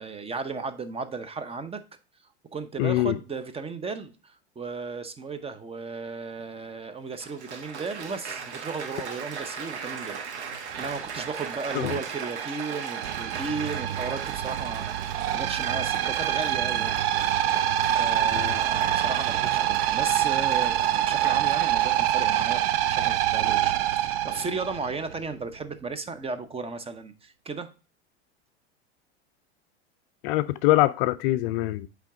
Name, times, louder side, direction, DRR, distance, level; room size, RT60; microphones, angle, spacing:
voice 1, 0.0-1.8 2.5-10.2 10.8-17.4 17.8-22.6 22.9-27.7, right 4 dB, 15° right, 0.8 m, -35 dB
voice 2, 2.8-3.2 11.7-11.9 18.3-18.6 30.2-31.9, left 17 dB, 50° left, 0.5 m, -24 dB
Applause, 6.4-6.5 7.1-23.0 23.8-24.1, right 6 dB, 80° right, 1.3 m, -39 dB
sound 1, 10.7-25.3, right 12 dB, 60° right, 0.6 m, -26 dB
8.2 x 3.5 x 3.7 m
hypercardioid pair, 90°, 33 cm